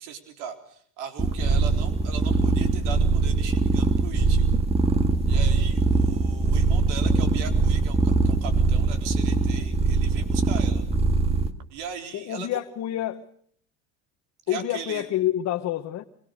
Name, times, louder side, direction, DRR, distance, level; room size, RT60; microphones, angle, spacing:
voice 1, 0.0-4.6 5.3-10.8 11.7-12.6 14.5-15.1, right 7 dB, 85° right, 6 dB, 4.1 m, -38 dB
sound 1, 1.2-11.5, right 3 dB, 15° right, 1.9 m, -22 dB
voice 2, 12.1-13.2 14.5-16.0, left 13 dB, 50° left, 6 dB, 1.3 m, -28 dB
25.5 x 23.0 x 6.6 m, 0.62 s
supercardioid pair, 120°, 35 cm